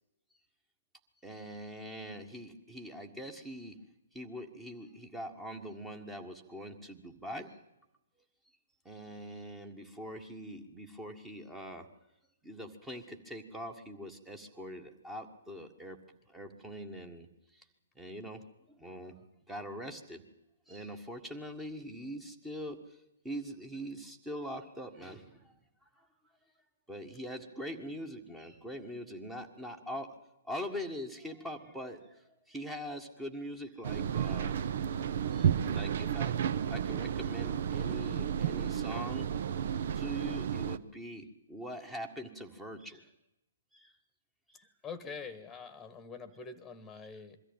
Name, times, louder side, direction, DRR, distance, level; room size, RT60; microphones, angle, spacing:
voice 1, 1.2-3.8 4.1-7.6 8.9-11.9 12.4-16.0 16.3-17.3 17.5-17.7 18.0-18.4 18.7-20.2 20.7-25.5 26.0-26.1 26.9-30.2 30.4-34.6 35.3-36.3 36.7-39.3 39.9-43.1 43.7-43.9 44.5-44.7, equal, 5° right, 4 dB, 1.7 m, -43 dB
sound 1, 33.8-40.8, right 8 dB, 50° right, 0.8 m, -32 dB
voice 2, 44.8-47.4, left 5 dB, 10° left, 14 dB, 1.6 m, -45 dB
22.5 x 14.0 x 9.0 m, 0.90 s
figure-of-eight pair, 125°, 0 cm